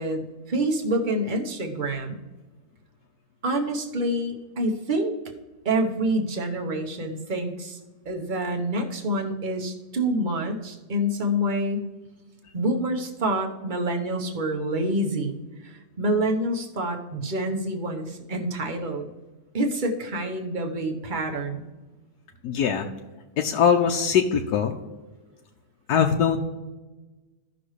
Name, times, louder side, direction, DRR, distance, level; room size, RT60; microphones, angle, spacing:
voice 1, 0.0-2.2 3.4-5.1 5.6-7.8 8.0-11.9 12.5-15.4 15.6-19.1 19.5-21.6, right 1 dB, 35° right, 3 dB, 1.1 m, -27 dB
voice 2, 22.4-22.9 23.4-24.7 25.9-26.4, left 7 dB, 85° left, 2 dB, 1.2 m, -21 dB
15.5 x 6.0 x 3.2 m, 1.2 s
omnidirectional pair, 1.7 m